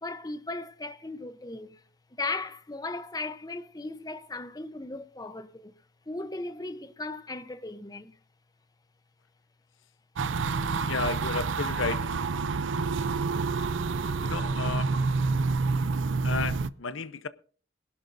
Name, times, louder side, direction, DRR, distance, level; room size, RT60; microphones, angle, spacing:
voice 1, 0.0-1.8 2.2-5.8 6.1-8.1, left 3 dB, 20° left, 0.8 m, -37 dB
sound 1, 10.2-16.7, right 4 dB, 80° right, 0.5 m, -28 dB
voice 2, 10.8-12.1 14.2-14.9 16.2-17.3, left 4 dB, 85° left, 0.7 m, -32 dB
22.5 x 12.0 x 2.6 m
head